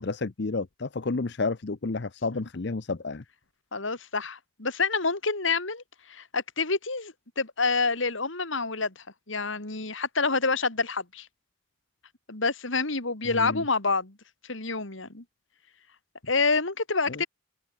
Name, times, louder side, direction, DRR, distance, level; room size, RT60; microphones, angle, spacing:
voice 1, 0.0-3.2 13.2-13.6 17.1-17.2, left 3 dB, 55° left, 0.7 m, -31 dB
voice 2, 3.7-11.3 12.3-14.2 14.5-15.2 16.2-17.3, left 4 dB, 70° left, 2.9 m, -28 dB
head